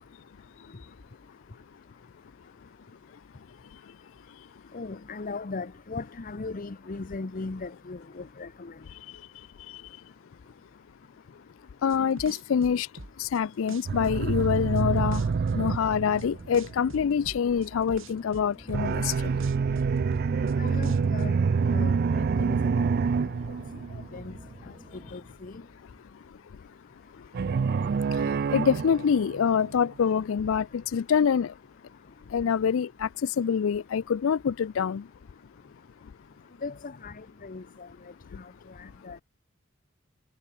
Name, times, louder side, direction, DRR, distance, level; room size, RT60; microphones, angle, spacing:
voice 1, 4.7-8.7 20.6-21.3 21.7-22.9 24.1-24.3 25.1-25.6 36.6-37.9 38.4-38.5 38.8-39.2, left 3 dB, 40° left, 0.7 m, -38 dB
voice 2, 11.8-12.9 13.2-15.2 15.5-19.3 28.5-31.5 32.3-35.1, left 7 dB, 70° left, 0.4 m, -25 dB
sound 1, 11.9-13.4 13.7-14.8 15.1-16.2 16.5-19.1 19.4-21.3, right 2 dB, 65° right, 4.1 m, -44 dB
sound 2, 13.9-25.2, equal, 5° left, 2.1 m, -51 dB
Large Creature Vocals, 13.9-17.0 18.7-24.4 27.3-29.8, right 5 dB, 50° right, 0.4 m, -27 dB
head